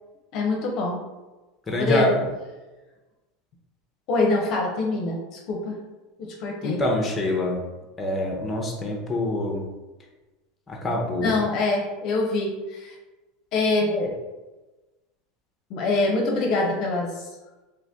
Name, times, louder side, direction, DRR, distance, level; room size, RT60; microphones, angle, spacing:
voice 1, 0.3-1.0 1.8-2.1 4.1-5.8 6.2-6.8 11.2-13.0 13.5-14.1 15.7-17.3, left 3 dB, 55° left, 0 dB, 0.7 m, -24 dB
voice 2, 1.7-2.2 6.6-7.6 8.0-9.7 10.7-11.4, left 1 dB, 20° left, 0 dB, 0.8 m, -25 dB
2.8 x 2.5 x 3.5 m, 1.1 s
hypercardioid pair, 95°, 0 cm